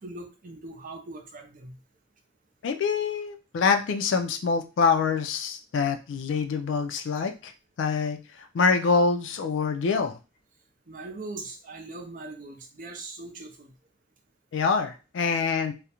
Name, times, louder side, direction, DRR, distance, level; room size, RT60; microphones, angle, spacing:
voice 1, 0.0-1.8 10.9-13.7 15.3-15.4, right 2 dB, 45° right, 3 dB, 0.5 m, -41 dB
voice 2, 2.6-7.5 7.8-8.2 8.5-10.2 14.5-15.7, left 5 dB, 75° left, 8 dB, 0.4 m, -25 dB
2.4 x 2.0 x 2.8 m, 0.31 s
head